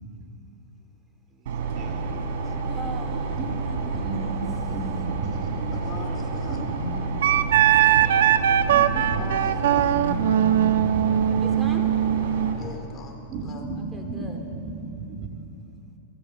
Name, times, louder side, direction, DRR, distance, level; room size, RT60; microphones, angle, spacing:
voice 1, 1.3-2.2 3.3-3.5 3.8-7.6 8.7-9.3 9.7-11.2 13.3-15.3, right 3 dB, 35° right, 1 dB, 3.5 m, -34 dB
sound 1, 1.5-12.5, right 3 dB, 70° right, 4.5 m, -29 dB
voice 2, 2.6-3.4 3.9-4.1 8.0-8.3 11.4-11.9 13.9-14.4, right 1 dB, 10° right, 3 dB, 3.8 m, -39 dB
voice 3, 5.7-6.6 9.0-10.0 12.6-13.6, left 4 dB, 25° left, 2 dB, 3.8 m, -41 dB
Wind instrument woodwind instrument, 7.2-12.6, right 11 dB, 85° right, 1.1 m, -20 dB
30.0 x 22.0 x 8.2 m, 2.9 s
supercardioid pair, 145°, 0 cm